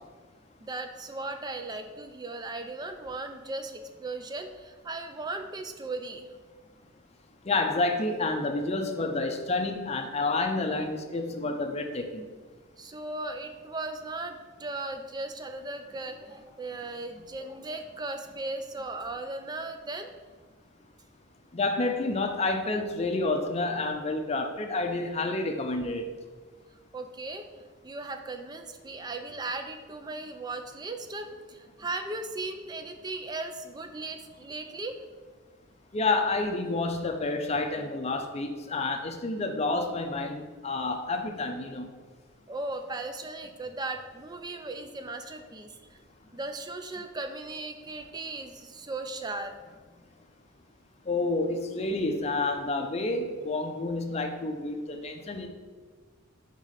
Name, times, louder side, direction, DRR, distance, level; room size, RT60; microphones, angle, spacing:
voice 1, 0.6-6.3 12.8-20.1 26.9-27.5 27.8-35.0 42.5-46.0 46.3-49.5, right 2 dB, 20° right, 7 dB, 0.4 m, -37 dB
voice 2, 7.4-12.2 21.5-26.1 35.9-41.9 51.1-55.5, left 2 dB, 30° left, 4 dB, 0.5 m, -29 dB
4.9 x 3.7 x 5.6 m, 1.4 s
head